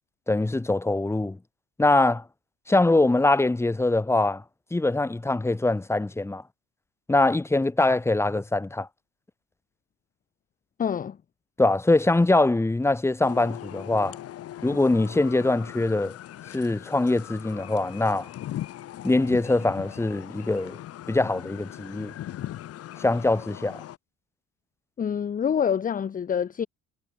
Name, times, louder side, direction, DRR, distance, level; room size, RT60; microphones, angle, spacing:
voice 1, 0.3-1.4 1.8-2.2 2.7-4.4 4.7-6.4 7.1-8.9 11.6-14.2 14.6-16.2 16.5-18.3 19.0-20.8 21.1-22.1 23.0-23.8, left 2 dB, 10° left, 4.5 m, -23 dB
voice 2, 10.8-11.2 25.0-26.7, left 8 dB, 25° left, 1.4 m, -26 dB
sound 1, 13.2-24.0, left 13 dB, 50° left, 4.3 m, -39 dB
cardioid pair, 155°, 31 cm